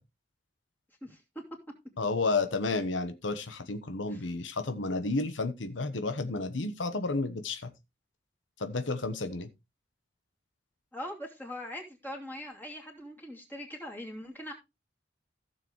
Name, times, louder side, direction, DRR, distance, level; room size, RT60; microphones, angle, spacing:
voice 1, 2.0-7.7 8.6-9.5, left 3 dB, 85° left, 1.1 m, -31 dB
voice 2, 10.9-14.5, left 1 dB, 10° left, 2.8 m, -41 dB
15.5 x 6.8 x 3.1 m
head